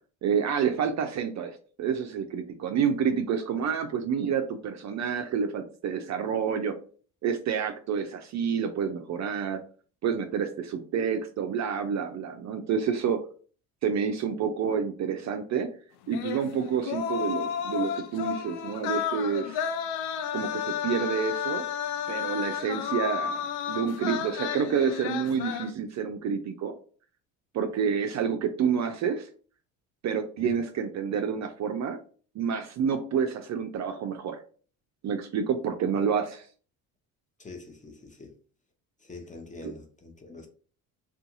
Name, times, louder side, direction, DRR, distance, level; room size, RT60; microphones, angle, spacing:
voice 1, 0.2-6.7 7.2-9.6 10.0-13.2 13.8-15.7 16.1-19.6 20.3-21.6 22.1-26.7 27.5-29.3 30.0-32.0 32.4-34.4 35.0-36.5 39.6-39.7, right 7 dB, 40° right, 0.4 m, -28 dB
sound 1, 16.1-25.7, left 8 dB, 60° left, 0.5 m, -32 dB
voice 2, 37.4-38.3 39.0-40.5, left 3 dB, 15° left, 0.7 m, -44 dB
2.6 x 2.4 x 2.5 m
hypercardioid pair, 55°, 44 cm